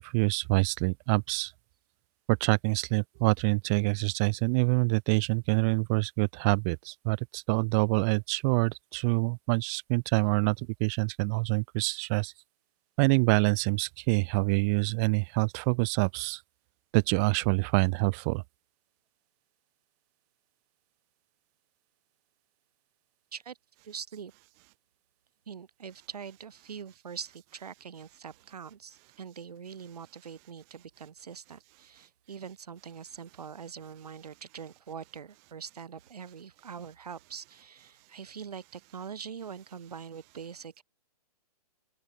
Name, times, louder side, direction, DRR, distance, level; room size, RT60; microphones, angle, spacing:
voice 1, 0.0-1.5 2.3-12.3 13.0-16.4 16.9-18.4, right 33 dB, 25° right, 1.2 m, -26 dB
voice 2, 23.8-24.3 25.5-40.8, right 7 dB, 75° right, 4.5 m, -43 dB
open air
hypercardioid pair, 160°, 20 cm